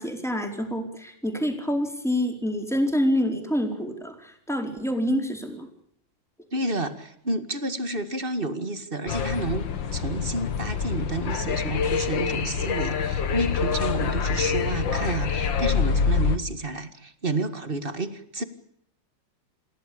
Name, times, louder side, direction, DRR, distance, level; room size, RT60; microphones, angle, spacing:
voice 1, 0.0-5.7, equal, ahead, 4 dB, 4.4 m, -27 dB
voice 2, 6.5-9.7 9.9-18.4, right 2 dB, 30° right, 10 dB, 2.1 m, -30 dB
sound 1, 9.1-16.4, left 6 dB, 75° left, 2.2 m, -26 dB
28.5 x 16.0 x 8.6 m, 0.72 s
omnidirectional pair, 2.0 m